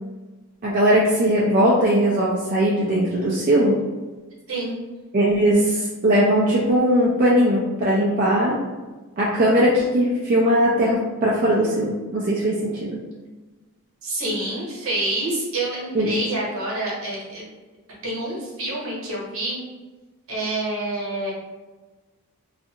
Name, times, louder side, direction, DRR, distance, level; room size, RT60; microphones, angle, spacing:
voice 1, 0.6-3.8 5.1-8.6 9.2-13.0 15.9-16.1, equal, 40° right, -6 dB, 0.4 m, -19 dB
voice 2, 14.0-17.4 18.0-19.6 20.3-21.3, right 1 dB, 65° right, -5 dB, 1.0 m, -27 dB
2.5 x 2.4 x 2.7 m, 1.2 s
head